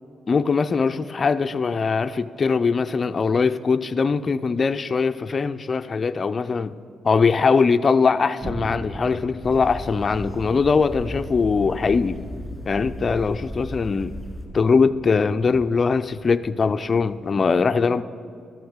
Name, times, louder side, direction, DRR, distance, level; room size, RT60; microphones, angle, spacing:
voice 1, 0.3-6.7 7.0-12.2 12.7-14.1 14.5-18.0, left 5 dB, 35° left, 0.4 m, -21 dB
sound 1, 8.4-17.3, right 2 dB, 15° right, 0.5 m, -40 dB
sound 2, 9.4-14.5, left 1 dB, 5° left, 2.2 m, -36 dB
12.0 x 7.1 x 6.4 m
cardioid pair, 90°, 0 cm